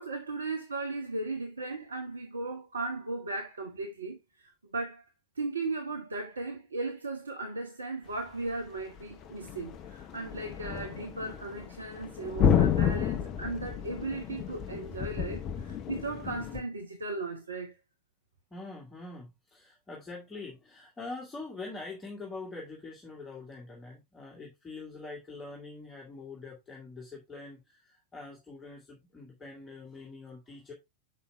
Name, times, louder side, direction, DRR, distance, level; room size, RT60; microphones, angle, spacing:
voice 1, 0.0-5.0 5.4-17.8, right 3 dB, 75° right, 1.0 m, -37 dB
sound 1, 9.0-16.6, left 8 dB, 35° left, 0.7 m, -31 dB
voice 2, 18.5-30.7, left 3 dB, 15° left, 1.9 m, -44 dB
6.6 x 5.5 x 3.3 m
figure-of-eight pair, 90°, 0 cm